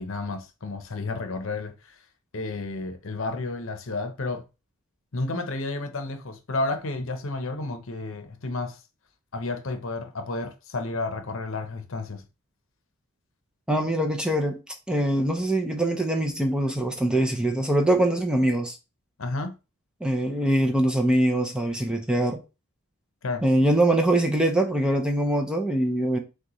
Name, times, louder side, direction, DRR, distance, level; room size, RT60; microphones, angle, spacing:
voice 1, 0.0-2.0 2.3-4.4 5.1-8.8 9.3-12.2 19.2-19.5 23.2-23.4, left 2 dB, 65° left, 0.8 m, -31 dB
voice 2, 13.7-14.6 14.9-18.8 20.0-22.4 23.4-26.2, right 1 dB, 5° right, 0.5 m, -23 dB
6.4 x 2.3 x 3.0 m
head